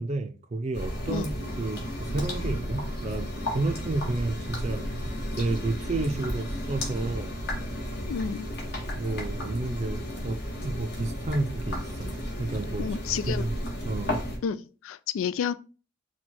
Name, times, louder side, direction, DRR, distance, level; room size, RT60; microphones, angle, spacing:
voice 1, 0.0-1.3 1.6-4.8 5.4-7.3 9.0-12.1 12.4-13.5 13.8-14.2, right 2 dB, 35° right, 0.4 m, -31 dB
Coffeemaker-full-perkolate Beep, 0.7-14.4, equal, 55° left, 1.2 m, -33 dB
voice 2, 8.1-8.5 12.8-13.4 14.4-15.5, left 7 dB, 90° left, 0.3 m, -30 dB
4.4 x 2.3 x 4.3 m
head